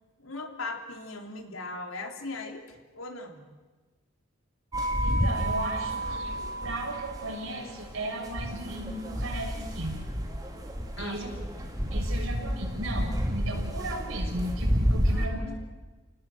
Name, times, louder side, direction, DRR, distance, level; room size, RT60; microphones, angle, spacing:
voice 1, 0.2-3.4 11.0-11.7 15.1-15.6, left 3 dB, 85° left, 4 dB, 3.4 m, -39 dB
sound 1, 4.7-15.3, equal, 20° right, 3.0 m, -30 dB
voice 2, 5.0-10.0 11.0-11.3 11.9-15.4, right 1 dB, 90° right, 1 dB, 6.4 m, -36 dB
30.0 x 19.0 x 7.8 m, 1.2 s
head